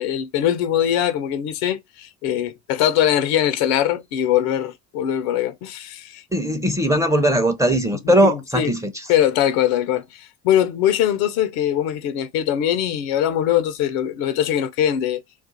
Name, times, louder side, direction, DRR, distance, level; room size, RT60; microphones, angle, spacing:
voice 1, 0.0-6.2 8.0-8.7 9.1-15.2, left 10 dB, 85° left, 0.6 m, -22 dB
voice 2, 6.3-9.1, equal, 5° right, 0.5 m, -19 dB
2.4 x 2.4 x 3.9 m
supercardioid pair, 70°, 47 cm